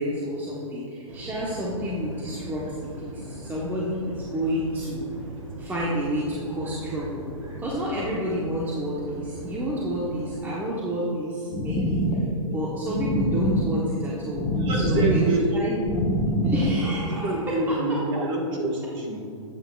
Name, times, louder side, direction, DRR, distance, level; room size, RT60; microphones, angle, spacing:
voice 1, 0.0-5.1 5.6-7.3 7.6-12.0 12.5-15.8 16.4-17.8, equal, 10° right, -5 dB, 1.1 m, -29 dB
sound 1, 1.1-10.4, right 1 dB, 85° right, 1.7 m, -39 dB
sound 2, 11.5-17.3, equal, 25° left, 1.4 m, -25 dB
voice 2, 14.5-15.7 17.1-19.5, right 2 dB, 30° right, 0 dB, 1.8 m, -27 dB
11.0 x 8.4 x 2.4 m, 2.4 s
hypercardioid pair, 130°, 17 cm